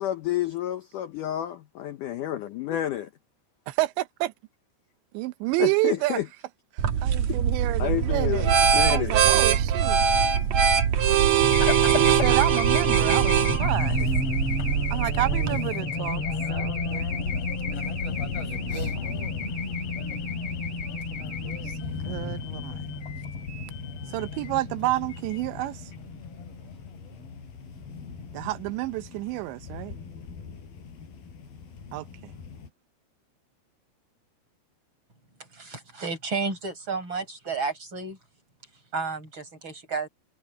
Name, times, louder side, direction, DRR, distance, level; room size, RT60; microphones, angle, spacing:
voice 1, 0.0-3.1 5.6-6.3 7.8-9.2, left 12 dB, 85° left, 1.8 m, -30 dB
voice 2, 3.7-4.3 5.1-6.2 6.7-8.5 8.9-10.1 11.9-14.2 14.9-16.2 16.5-17.3 18.6-19.0 21.6-21.7 22.0-22.8 24.1-25.8 28.3-30.0 31.9-32.3, right 18 dB, 90° right, 3.1 m, -29 dB
sound 1, 6.8-15.6, right 8 dB, 70° right, 1.8 m, -22 dB
Race car auto racing / Alarm, 11.4-28.4, left 4 dB, 35° left, 4.0 m, -31 dB
sound 2, 18.0-32.7, left 5 dB, 60° left, 6.5 m, -42 dB
voice 3, 35.5-38.2 38.9-40.1, right 4 dB, 25° right, 6.2 m, -32 dB
omnidirectional pair, 5.0 m